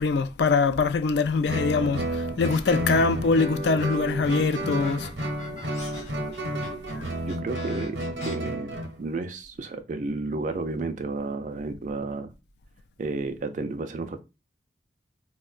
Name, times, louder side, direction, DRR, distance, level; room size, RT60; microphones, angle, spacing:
voice 1, 0.0-5.1 5.9-6.0 6.9-7.0, left 4 dB, 65° left, 0.3 m, -23 dB
Guitar, 1.5-8.9, right 1 dB, 70° right, 0.7 m, -31 dB
sound 1, 2.5-3.1 3.6-8.3, left 3 dB, 40° left, 0.8 m, -43 dB
voice 2, 7.3-8.0 8.3-8.7 9.0-12.3 13.0-14.2, right 3 dB, 40° right, 0.4 m, -31 dB
4.4 x 2.1 x 2.4 m
head